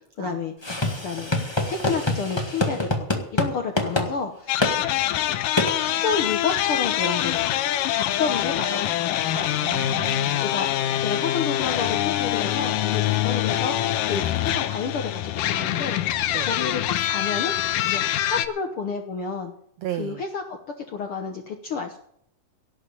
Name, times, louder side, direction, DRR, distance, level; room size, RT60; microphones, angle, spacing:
voice 1, 0.2-0.5 1.0-2.9 3.1-5.4 5.8-9.3 10.4-17.5 17.8-19.5 19.9-22.0, left 5 dB, 60° left, 4 dB, 1.5 m, -30 dB
sound 1, 0.6-3.5 3.8-4.1 4.6-4.7 5.6-5.7, left 2 dB, 35° left, 0.4 m, -25 dB
sound 2, 4.5-18.5, left 12 dB, 85° left, 2.4 m, -25 dB
voice 2, 9.3-10.4 13.3-13.4 16.3-16.5 19.8-20.2, right 13 dB, 85° right, 10 dB, 1.5 m, -34 dB
17.5 x 6.6 x 8.5 m, 0.69 s
omnidirectional pair, 3.8 m